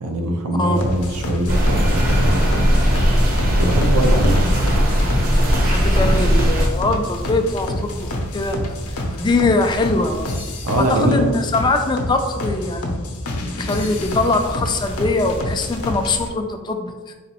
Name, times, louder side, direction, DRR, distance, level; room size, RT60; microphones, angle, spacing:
voice 1, 0.0-2.6 3.6-4.6 10.6-11.2, right 1 dB, 80° right, 4 dB, 0.5 m, -22 dB
sound 1, 0.7-16.3, left 1 dB, 70° left, 0.6 m, -28 dB
sound 2, 1.5-6.7, equal, 40° right, 0.7 m, -17 dB
voice 2, 5.6-10.3 10.8-13.0 13.6-17.1, left 3 dB, 20° left, 5 dB, 0.3 m, -22 dB
4.0 x 3.0 x 2.9 m, 1.3 s
head